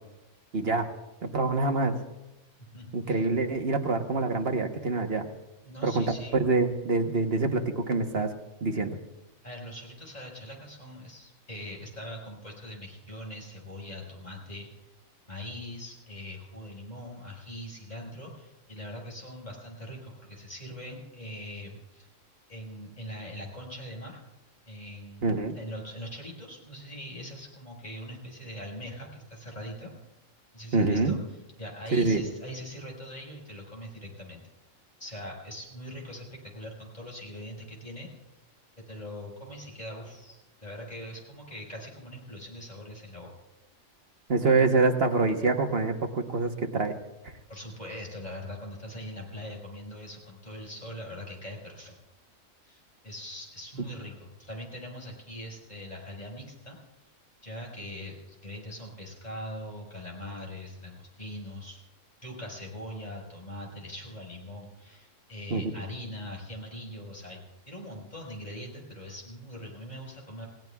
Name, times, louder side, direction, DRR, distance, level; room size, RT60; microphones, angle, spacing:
voice 1, 0.5-0.9 1.2-2.0 2.9-5.3 5.8-6.1 6.4-8.3 8.6-9.0 25.2-25.6 30.7-31.2 31.9-32.2 44.3-47.0 65.5-65.7, right 3 dB, 50° right, 4 dB, 1.3 m, -26 dB
voice 2, 2.7-3.2 5.6-6.4 9.4-14.7 15.3-22.1 22.5-24.2 24.7-29.9 30.5-31.2 31.6-34.4 35.0-38.1 38.8-43.3 47.5-52.0 52.6-56.8 57.4-61.8 62.2-67.4 67.7-70.5, equal, 30° left, -1 dB, 5.2 m, -42 dB
29.0 x 17.5 x 2.3 m, 1.0 s
omnidirectional pair, 1.4 m